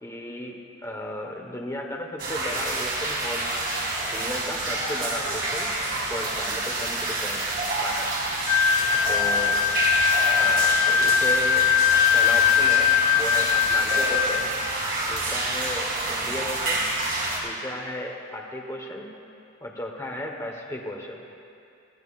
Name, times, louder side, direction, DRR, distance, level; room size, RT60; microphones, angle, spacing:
voice 1, 0.0-3.9 4.1-5.7 6.1-7.4 7.8-8.1 9.1-9.6 10.3-11.7 12.1-14.4 15.0-16.9 17.4-19.1 19.6-21.2, left 1 dB, 15° left, 0 dB, 1.2 m, -35 dB
sound 1, 2.2-17.4, right 2 dB, 45° right, 2.5 m, -28 dB
sound 2, 8.5-14.5, left 8 dB, 85° left, 0.7 m, -21 dB
23.0 x 15.0 x 2.5 m, 2.5 s
head